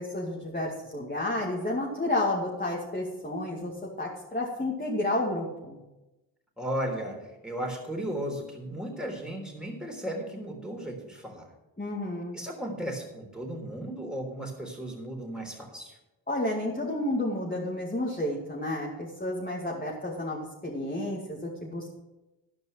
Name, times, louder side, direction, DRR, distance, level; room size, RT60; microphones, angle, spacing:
voice 1, 0.0-3.7 4.0-5.8 11.8-12.4 16.3-21.9, left 1 dB, 20° left, -4 dB, 2.4 m, -31 dB
voice 2, 6.6-11.5 12.3-16.0, right 1 dB, ahead, 0 dB, 3.6 m, -35 dB
12.5 x 5.4 x 7.9 m, 1.0 s
supercardioid pair, 50°, 43 cm